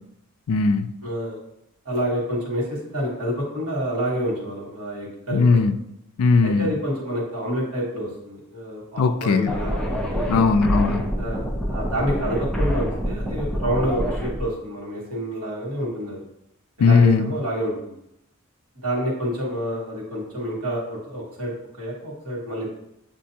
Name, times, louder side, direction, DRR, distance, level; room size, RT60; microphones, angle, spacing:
voice 1, 0.5-0.9 5.3-5.8 6.2-6.7 9.0-9.5 10.3-11.1 16.8-17.3, left 4 dB, 75° left, 10 dB, 0.4 m, -18 dB
voice 2, 1.0-1.4 1.8-5.6 6.4-10.4 11.2-11.4 11.7-16.2 16.8-18.0 18.7-22.7, equal, 85° right, -4 dB, 1.4 m, -28 dB
sound 1, 9.5-14.4, equal, 5° left, 0.5 m, -26 dB
7.4 x 2.5 x 2.7 m, 0.79 s
head